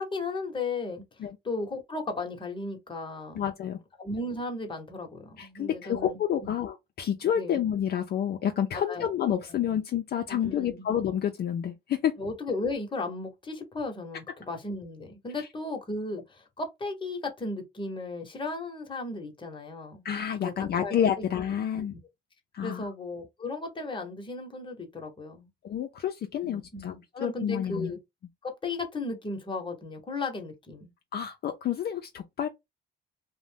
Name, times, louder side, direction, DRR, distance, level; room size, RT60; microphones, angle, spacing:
voice 1, 0.0-1.0 1.4-3.4 4.0-6.5 7.4-7.6 8.7-9.1 9.5-9.6 10.3-10.9 12.2-20.0 20.4-21.3 21.7-22.0 22.6-25.5 26.4-28.0 28.4-30.9, left 3 dB, 25° left, 0.9 m, -35 dB
voice 2, 3.3-3.8 5.4-12.1 15.4-15.5 20.0-21.9 22.5-22.9 25.6-27.0 27.2-27.9 31.1-32.5, left 9 dB, 55° left, 0.4 m, -29 dB
2.5 x 2.1 x 3.3 m
cardioid pair, 90°, 20 cm